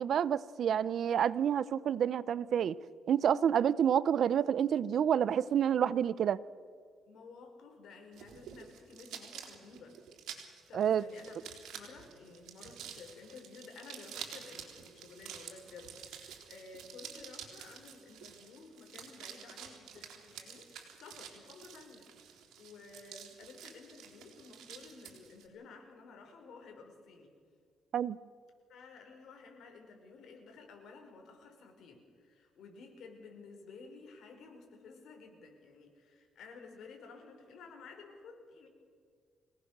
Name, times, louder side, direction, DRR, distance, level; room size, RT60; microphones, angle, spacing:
voice 1, 0.0-2.8 3.1-6.4 10.7-11.0 27.9-28.2, right 9 dB, 60° right, 18 dB, 0.6 m, -28 dB
voice 2, 7.1-10.0 10.7-11.4 11.7-27.3 28.7-38.7, left 4 dB, 70° left, 3 dB, 5.2 m, -53 dB
sound 1, 8.1-25.4, right 8 dB, 85° right, 3.6 m, -50 dB
26.0 x 18.5 x 6.7 m, 2.1 s
cardioid pair, 115°, 0 cm